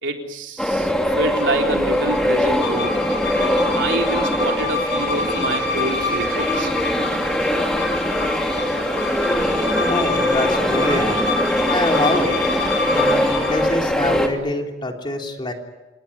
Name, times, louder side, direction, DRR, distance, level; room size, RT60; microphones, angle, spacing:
voice 1, 0.0-3.0 3.7-6.7, right 2 dB, 70° right, 2 dB, 3.9 m, -27 dB
sound 1, 0.6-14.3, equal, 5° left, 2.8 m, -22 dB
sound 2, 1.0-13.7, left 4 dB, 65° left, 6.4 m, -28 dB
voice 2, 9.9-11.2 11.7-12.4 12.9-15.5, left 2 dB, 25° left, 2 dB, 3.4 m, -25 dB
29.0 x 19.5 x 9.9 m, 1.1 s
head